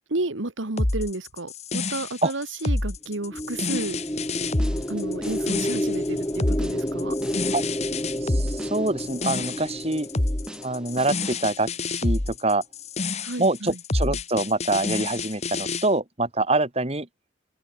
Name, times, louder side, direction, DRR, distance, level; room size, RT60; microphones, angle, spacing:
voice 1, 0.1-4.0 4.9-7.2 13.2-13.8, right 2 dB, 90° right, 1.9 m, -31 dB
sound 1, 0.8-15.9, left 2 dB, 35° left, 1.4 m, -28 dB
sound 2, 3.1-11.5, equal, 15° left, 4.9 m, -30 dB
sound 3, 3.5-11.5, right 1 dB, 5° right, 5.3 m, -46 dB
voice 2, 8.2-10.1 10.6-12.6 13.4-17.1, right 2 dB, 35° right, 2.6 m, -25 dB
head